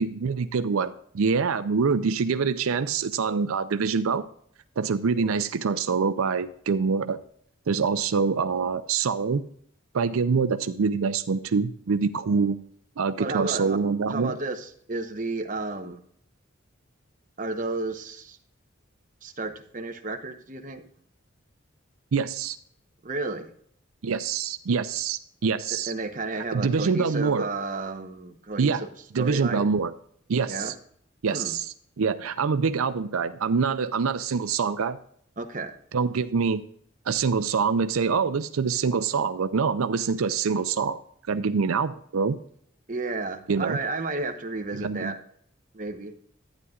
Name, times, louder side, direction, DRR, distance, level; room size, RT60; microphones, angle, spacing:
voice 1, 0.0-4.3 4.8-7.2 7.7-9.4 9.9-12.6 13.0-14.3 22.1-22.6 24.0-25.9 26.5-27.5 28.6-28.8 29.1-29.9 30.3-30.7 31.2-35.0 35.9-36.6 37.1-41.0 41.3-42.4 43.5-43.8 44.7-45.1, right 5 dB, 90° right, 11 dB, 0.5 m, -25 dB
voice 2, 13.2-13.8 14.1-16.0 17.4-18.4 19.2-20.8 23.0-23.5 25.9-28.9 29.2-29.7 30.5-30.7 31.3-31.5 35.4-35.7 42.9-45.2 45.7-46.1, right 3 dB, 40° right, 4 dB, 0.9 m, -32 dB
11.5 x 9.3 x 2.4 m, 0.63 s
head